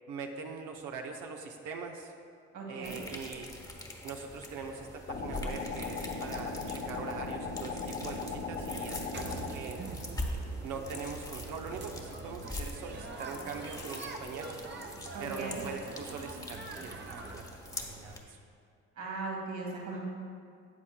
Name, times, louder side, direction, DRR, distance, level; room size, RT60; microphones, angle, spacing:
voice 1, 0.1-2.1 2.7-3.5 4.0-9.9 10.6-14.5 15.2-18.4, right 5 dB, 90° right, 2 dB, 0.7 m, -42 dB
voice 2, 2.5-3.0 15.1-15.6 19.0-20.0, right 3 dB, 70° right, -2 dB, 1.9 m, -38 dB
sound 1, 2.8-18.2, left 1 dB, 10° left, 1.1 m, -44 dB
sound 2, 5.1-9.5, left 4 dB, 45° left, 1.0 m, -37 dB
sound 3, 9.1-17.4, right 3 dB, 35° right, 0.8 m, -44 dB
13.0 x 8.2 x 2.2 m, 2.3 s
cardioid pair, 90°, 30 cm